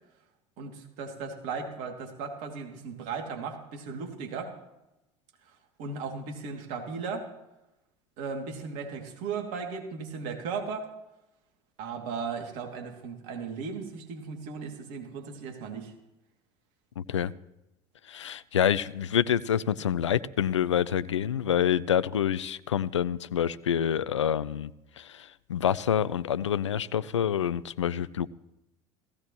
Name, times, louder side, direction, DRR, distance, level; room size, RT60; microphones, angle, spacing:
voice 1, 0.6-4.6 5.8-7.3 8.2-10.9 11.8-15.9, right 5 dB, 60° right, 2.5 m, -36 dB
voice 2, 17.0-17.3 18.1-24.7 25.0-28.3, left 9 dB, 85° left, 0.4 m, -27 dB
17.5 x 15.5 x 3.0 m
figure-of-eight pair, 65°, 15 cm